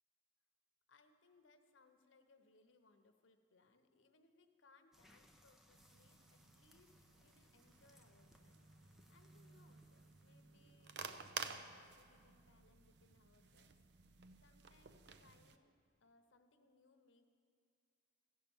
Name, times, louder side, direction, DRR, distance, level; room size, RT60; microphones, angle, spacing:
voice 1, 0.9-8.6 9.1-11.0 11.3-17.3, left 3 dB, 85° left, 7 dB, 0.9 m, -71 dB
sound 1, 4.9-10.7, equal, ahead, 0.5 m, -70 dB
sound 2, 5.7-15.6, right 6 dB, 60° right, 0.5 m, -53 dB
16.0 x 5.6 x 7.1 m, 2.3 s
head